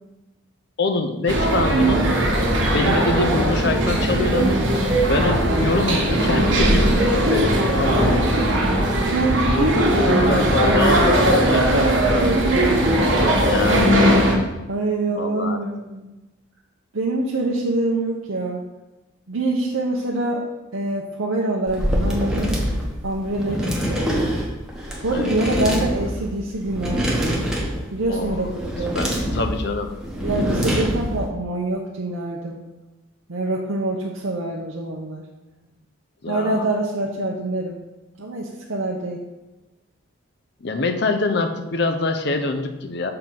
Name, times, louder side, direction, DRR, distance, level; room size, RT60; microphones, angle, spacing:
voice 1, 0.8-2.0 2.7-4.5 5.1-8.3 9.5-11.8 13.5-13.9 15.1-15.6 23.5-23.8 25.1-25.7 28.1-28.4 28.9-29.9 36.2-36.7 40.6-43.1, left 3 dB, 55° left, 6 dB, 0.7 m, -25 dB
sound 1, 1.3-14.4, right 1 dB, 65° right, 1.4 m, -19 dB
voice 2, 9.0-10.8 11.4-12.9 13.3-13.4 14.7-16.1 16.9-18.6 19.3-20.4 20.7-22.6 23.0-24.4 25.0-27.2 27.9-29.0 30.2-32.7 33.3-35.3 36.3-37.8 38.2-39.2, right 2 dB, 80° right, -2 dB, 0.8 m, -25 dB
sound 2, 21.7-31.3, equal, 5° right, 1.0 m, -25 dB
6.7 x 3.8 x 5.8 m, 1.1 s
head